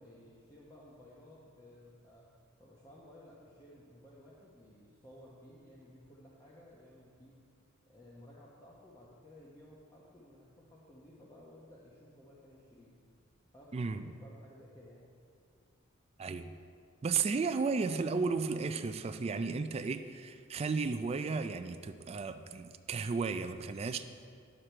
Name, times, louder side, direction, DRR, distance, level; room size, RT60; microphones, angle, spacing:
voice 1, 0.0-2.3 2.6-7.3 7.9-12.9 13.5-13.8 14.2-15.1, left 1 dB, 20° left, -6 dB, 0.9 m, -56 dB
voice 2, 13.7-14.1 16.2-16.5 17.0-24.0, right 4 dB, 30° right, 9 dB, 0.3 m, -34 dB
10.0 x 6.6 x 4.4 m, 2.2 s
head